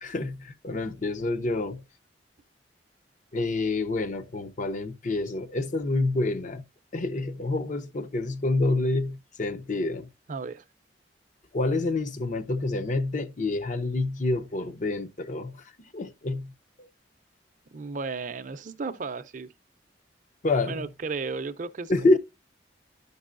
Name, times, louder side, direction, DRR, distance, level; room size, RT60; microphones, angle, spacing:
voice 1, 0.0-1.8 3.3-6.6 6.9-10.1 11.5-16.5 16.8-16.9 20.4-20.9 21.9-22.2, left 2 dB, 45° left, 0.6 m, -27 dB
voice 2, 10.3-10.6 17.7-19.5 20.7-22.2, right 4 dB, 45° right, 0.5 m, -34 dB
12.0 x 5.4 x 2.5 m
head